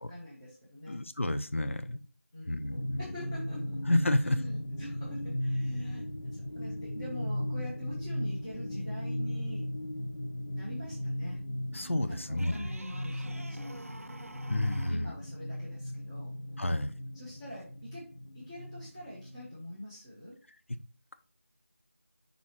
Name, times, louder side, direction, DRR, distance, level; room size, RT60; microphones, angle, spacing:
voice 1, 0.0-1.0 1.7-2.0 2.3-2.7 3.0-3.8 4.2-9.7 10.5-11.4 12.0-13.9 14.8-16.4 17.1-20.4, equal, 10° left, 0.9 m, -45 dB
voice 2, 0.9-2.0 2.5-3.1 3.9-4.4 11.7-12.7 14.5-15.1 16.6-17.0, left 1 dB, 60° left, 0.7 m, -30 dB
sound 1, 2.6-19.8, left 1 dB, 75° left, 1.8 m, -37 dB
sound 2, 12.3-15.1 17.6-17.7, right 2 dB, 70° right, 0.5 m, -49 dB
5.4 x 4.2 x 4.6 m
figure-of-eight pair, 170°, 8 cm